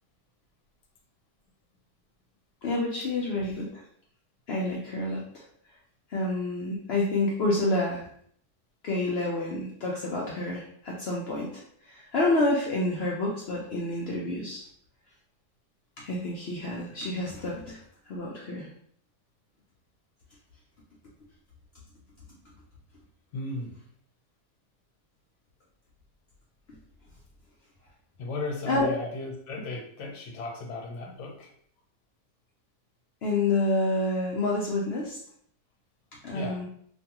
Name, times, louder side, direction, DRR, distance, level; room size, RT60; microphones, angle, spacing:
voice 1, 2.6-3.8 4.5-5.4 6.1-8.1 8.8-14.6 16.0-17.8 18.1-18.7 28.6-28.9 33.2-35.2 36.2-36.7, left 2 dB, 90° left, -3 dB, 0.5 m, -28 dB
voice 2, 23.3-23.8 28.2-31.5 36.3-36.6, left 3 dB, 60° left, 1 dB, 0.9 m, -36 dB
2.6 x 2.3 x 2.8 m, 0.62 s
omnidirectional pair, 1.6 m